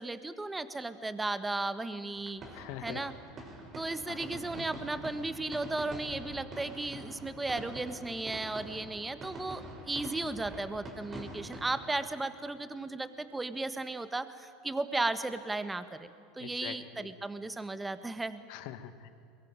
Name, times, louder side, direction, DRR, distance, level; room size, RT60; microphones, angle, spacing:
voice 1, 0.0-2.4 2.8-3.1 3.7-18.4, right 2 dB, 10° right, 12 dB, 1.4 m, -35 dB
sound 1, 2.2-11.9, right 2 dB, 30° right, 4.8 m, -45 dB
voice 2, 2.5-3.0 4.1-4.2 16.4-17.1 18.5-19.1, left 12 dB, 60° left, 10 dB, 1.6 m, -43 dB
22.5 x 21.5 x 9.1 m, 2.4 s
hypercardioid pair, 85°, 0 cm